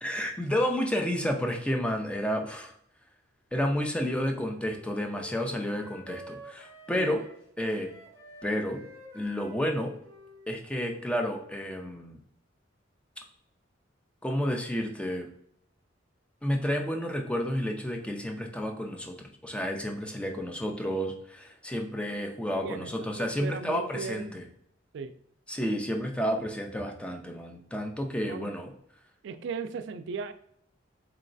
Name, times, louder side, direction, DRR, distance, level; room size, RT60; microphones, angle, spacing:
voice 1, 0.0-2.7 3.5-7.2 7.6-7.9 8.4-8.8 9.1-9.9 10.5-12.2 14.2-15.3 16.4-24.4 25.5-28.7, equal, 5° left, 3 dB, 0.4 m, -31 dB
Wind instrument woodwind instrument, 4.1-11.6, left 1 dB, 10° right, 0.8 m, -50 dB
voice 2, 22.6-24.3 24.9-25.1 28.3-28.5 29.2-30.3, right 5 dB, 65° right, 10 dB, 0.3 m, -37 dB
3.8 x 3.1 x 2.5 m, 0.70 s
head